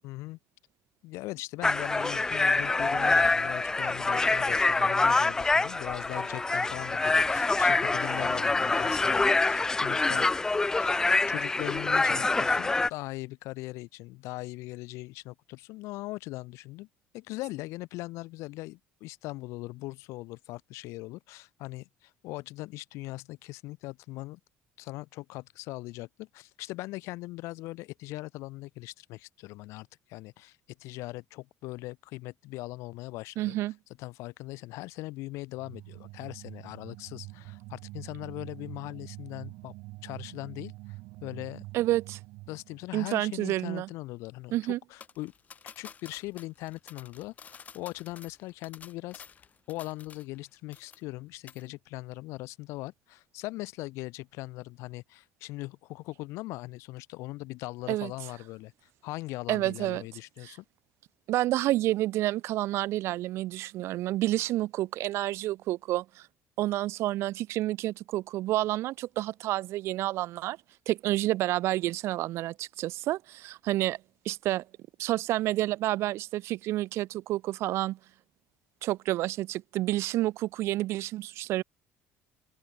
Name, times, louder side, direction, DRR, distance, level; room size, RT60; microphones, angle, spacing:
voice 1, 0.0-0.4 1.0-10.3 10.7-11.0 11.3-16.9 17.1-24.4 24.8-33.6 34.0-39.7 40.0-41.6 42.5-45.3 45.7-49.2 49.7-60.6, left 20 dB, 85° left, 1.4 m, -40 dB
sound 1, 1.6-12.9, left 3 dB, 15° left, 0.4 m, -25 dB
voice 2, 33.4-33.8 41.7-42.2 42.9-43.9 44.5-44.8 57.9-58.1 59.5-60.0 60.4-60.6 61.3-66.3 66.6-70.6 70.9-74.0 74.3-74.6 75.0-78.0 78.8-81.6, right 16 dB, 65° right, 0.5 m, -29 dB
sound 2, 35.5-42.9, right 21 dB, 85° right, 5.7 m, -45 dB
sound 3, 45.0-50.4 50.7-51.2 51.5-51.7, left 7 dB, 30° left, 6.0 m, -50 dB
open air
cardioid pair, 140°, 5 cm